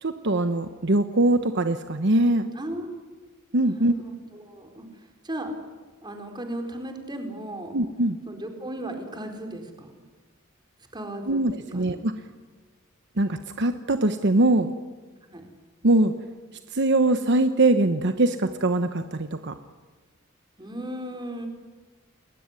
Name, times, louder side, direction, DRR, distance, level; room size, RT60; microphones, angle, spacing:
voice 1, 0.0-2.4 3.5-3.9 7.7-8.2 11.3-12.1 13.2-14.7 15.8-16.1 16.7-19.5, right 2 dB, 55° right, 9 dB, 1.1 m, -22 dB
voice 2, 2.5-2.9 3.7-5.5 6.0-7.7 8.3-9.9 10.9-11.9 15.3-15.4 20.6-21.5, right 1 dB, 20° right, 4 dB, 4.4 m, -36 dB
29.5 x 20.5 x 9.8 m, 1.3 s
head